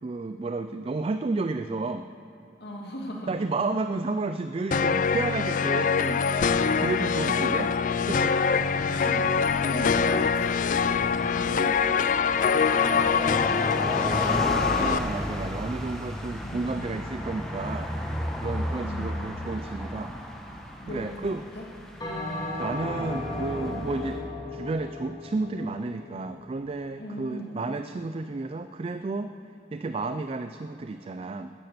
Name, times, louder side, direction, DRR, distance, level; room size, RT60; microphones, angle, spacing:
voice 1, 0.0-2.1 3.3-6.3 6.8-7.7 8.1-8.4 11.6-11.8 14.1-17.9 18.3-20.1 20.8-21.4 22.6-29.4 29.7-31.5, right 3 dB, 35° right, 9 dB, 0.3 m, -32 dB
voice 2, 2.6-3.3 8.9-13.3 14.1-14.8 16.4-17.0 18.8-19.3 20.8-21.6 23.6-23.9 27.0-27.6, equal, 65° left, -1 dB, 2.3 m, -39 dB
sound 1, 4.7-15.0, left 6 dB, 45° left, 0.4 m, -24 dB
sound 2, 8.5-24.2, equal, 5° left, 1.7 m, -35 dB
Bell, 22.0-26.6, left 2 dB, 25° left, 2.3 m, -35 dB
13.5 x 10.0 x 6.8 m, 2.9 s
head